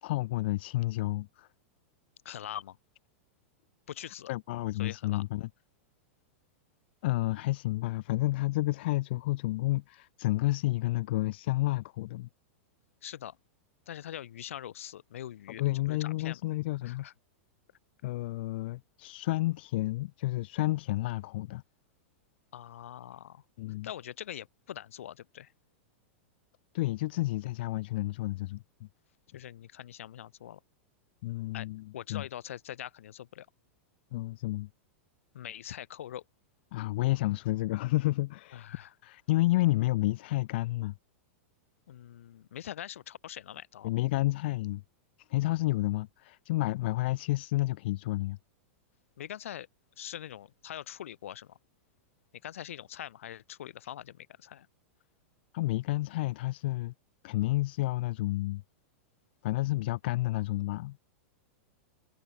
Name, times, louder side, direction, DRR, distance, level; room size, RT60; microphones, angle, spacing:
voice 1, 0.0-1.5 2.3-2.4 4.3-5.5 7.0-12.3 15.6-17.1 18.0-21.6 23.6-23.9 26.7-28.9 31.2-32.3 34.1-34.7 36.7-38.7 39.0-40.9 43.8-44.8 45.3-48.4 55.5-56.9 57.2-58.6 59.4-61.0, left 18 dB, 55° left, 1.1 m, -30 dB
voice 2, 2.2-2.8 3.9-4.3 4.8-5.2 13.0-13.4 13.9-16.4 16.8-17.1 22.5-23.4 23.8-25.5 29.3-30.6 31.5-31.7 31.9-33.5 35.3-36.2 38.5-38.9 41.9-43.9 49.2-49.7 50.0-51.6 52.4-54.7, left 11 dB, 85° left, 4.5 m, -43 dB
supercardioid pair, 165°, 7 cm